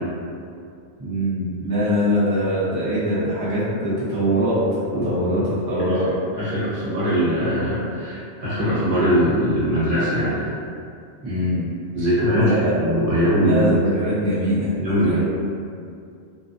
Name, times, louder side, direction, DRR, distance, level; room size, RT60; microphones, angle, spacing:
voice 1, 1.0-4.6 4.9-6.1 11.2-11.7 12.4-12.7 13.4-15.2, equal, 25° right, -12 dB, 0.6 m, -23 dB
voice 2, 6.3-10.4 11.9-13.8 14.8-15.2, equal, 50° right, -11 dB, 1.0 m, -21 dB
2.4 x 2.4 x 2.5 m, 2.4 s
omnidirectional pair, 1.2 m